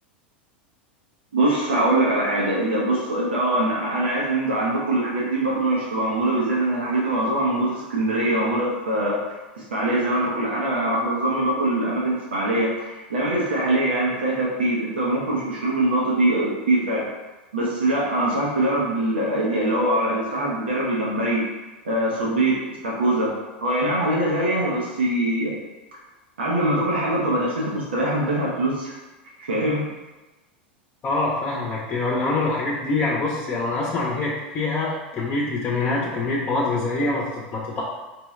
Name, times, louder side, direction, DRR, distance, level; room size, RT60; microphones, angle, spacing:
voice 1, 1.3-9.4 9.7-17.1 17.5-21.4 21.8-23.3 23.6-25.5 26.4-28.9 29.4-29.8, right 1 dB, 85° right, -4 dB, 0.9 m, -23 dB
voice 2, 31.0-37.8, left 2 dB, 35° left, -4 dB, 0.8 m, -25 dB
4.6 x 2.3 x 3.2 m, 1.1 s
hypercardioid pair, 100°, 6 cm